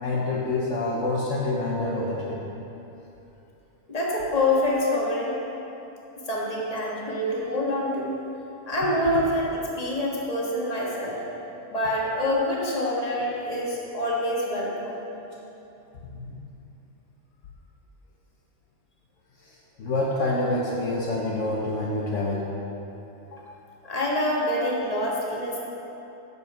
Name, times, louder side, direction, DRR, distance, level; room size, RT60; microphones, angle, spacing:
voice 1, 0.0-2.4 16.2-16.4 19.4-22.5, left 2 dB, 60° left, -4 dB, 1.2 m, -27 dB
voice 2, 3.9-5.4 6.3-8.2 8.6-11.2 11.7-15.1 23.3-23.4 23.8-25.6, left 1 dB, 25° left, -4 dB, 1.5 m, -26 dB
8.4 x 6.9 x 5.7 m, 3.0 s
omnidirectional pair, 1.5 m